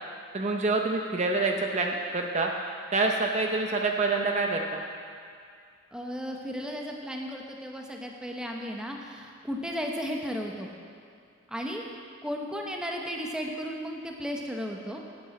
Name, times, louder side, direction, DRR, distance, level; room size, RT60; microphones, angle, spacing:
voice 1, 0.3-2.5 2.9-4.8, right 3 dB, 35° right, 2 dB, 0.7 m, -26 dB
voice 2, 5.9-10.7 11.5-11.8 12.2-15.0, equal, 5° right, 0 dB, 0.9 m, -34 dB
9.1 x 8.6 x 7.7 m, 2.3 s
head